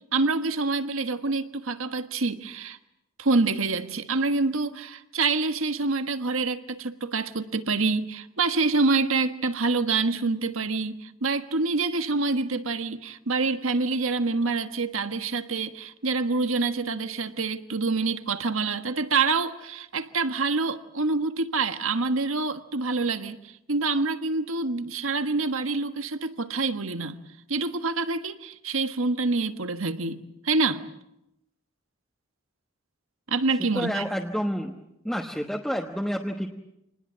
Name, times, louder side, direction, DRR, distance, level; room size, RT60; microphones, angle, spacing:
voice 1, 0.1-2.8 3.2-27.2 27.5-30.8 33.3-34.0, right 3 dB, 80° right, 9 dB, 1.4 m, -26 dB
voice 2, 33.6-34.7 35.0-36.5, equal, ahead, 0 dB, 1.2 m, -29 dB
27.0 x 20.0 x 7.5 m, 0.83 s
head